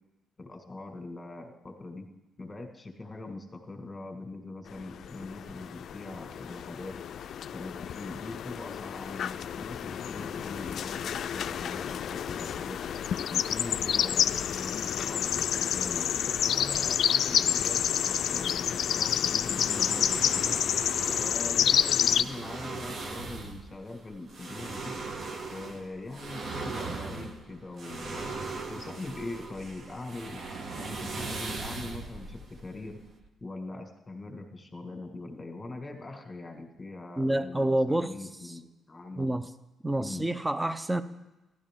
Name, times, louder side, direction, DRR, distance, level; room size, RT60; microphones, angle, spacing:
voice 1, 0.4-2.1 2.4-7.0 7.5-12.8 13.3-20.6 21.2-25.0 25.5-30.4 30.8-33.0 33.4-39.3 40.0-40.3, left 2 dB, 20° left, 1.8 m, -42 dB
sound 1, 4.8-22.2, left 9 dB, 65° left, 0.3 m, -29 dB
sound 2, 19.4-33.3, right 3 dB, 50° right, 1.2 m, -39 dB
voice 2, 37.2-38.1 38.4-38.6 39.2-39.5 39.8-41.0, right 1 dB, 10° right, 0.5 m, -28 dB
15.0 x 12.0 x 3.7 m
cardioid pair, 90°, 0 cm